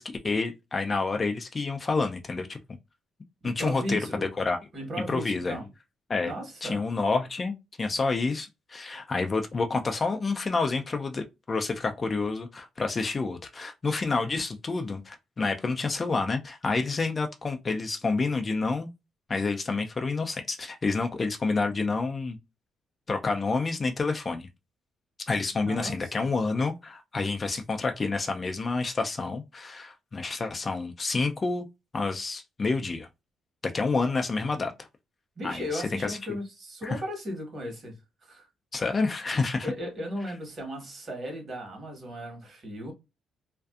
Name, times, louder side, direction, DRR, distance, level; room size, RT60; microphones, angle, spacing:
voice 1, 0.0-2.6 3.4-4.6 5.1-5.6 6.1-6.3 6.6-18.9 19.3-22.4 23.1-24.5 25.3-31.7 31.9-33.1 33.6-34.7 35.4-36.2 36.8-37.0 38.7-39.7, left 3 dB, 35° left, 0.4 m, -29 dB
voice 2, 3.4-4.3 4.7-5.7 6.2-6.8 25.5-26.3 35.4-38.0 38.2-38.5 39.6-42.9, equal, 45° right, 1.3 m, -36 dB
2.5 x 2.3 x 2.3 m
cardioid pair, 90°, 0 cm